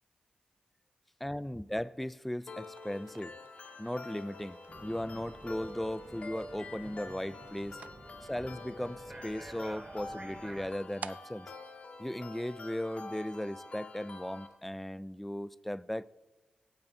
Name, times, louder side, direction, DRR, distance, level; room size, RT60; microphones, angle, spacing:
voice 1, 1.2-3.4 3.8-7.8 8.2-11.5 12.0-16.0, left 1 dB, 5° left, 0.3 m, -37 dB
sound 1, 2.5-14.5, left 3 dB, 60° left, 1.5 m, -47 dB
sound 2, 2.5-12.9, right 6 dB, 75° right, 0.4 m, -54 dB
sound 3, 4.7-10.7, right 2 dB, 35° right, 0.7 m, -51 dB
16.0 x 9.1 x 2.7 m
cardioid pair, 60°, 3 cm